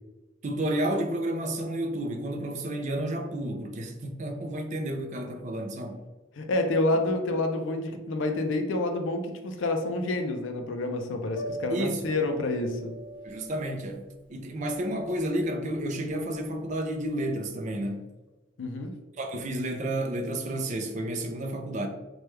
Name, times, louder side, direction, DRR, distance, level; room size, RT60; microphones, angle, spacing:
voice 1, 0.4-6.0 11.7-12.1 13.2-14.0 14.3-18.1 19.2-21.9, right 1 dB, 40° right, 0.4 m, -31 dB
voice 2, 6.4-12.9 18.6-18.9, left 2 dB, 70° left, 0.4 m, -28 dB
Piano, 11.3-17.2, right 1 dB, 50° left, 1.1 m, -44 dB
3.1 x 2.2 x 3.1 m
head